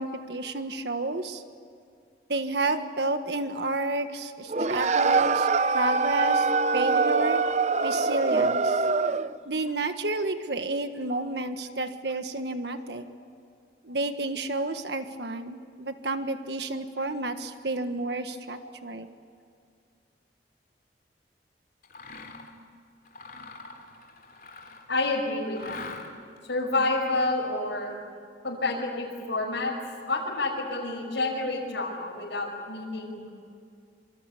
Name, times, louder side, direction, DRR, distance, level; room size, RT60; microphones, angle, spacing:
voice 1, 0.0-1.4 2.3-7.4 7.8-8.9 9.4-13.1 13.8-19.1, right 2 dB, 70° right, 8 dB, 1.6 m, -30 dB
sound 1, 4.5-9.4, right 4 dB, 40° right, 0.7 m, -24 dB
Mechanisms, 21.8-22.5 23.0-25.0 25.5-26.4, left 3 dB, 50° left, 3.6 m, -43 dB
voice 2, 24.9-25.8 26.5-27.9 28.4-29.7 30.1-33.3, left 2 dB, 85° left, -3 dB, 5.8 m, -29 dB
27.0 x 26.0 x 8.4 m, 2.3 s
head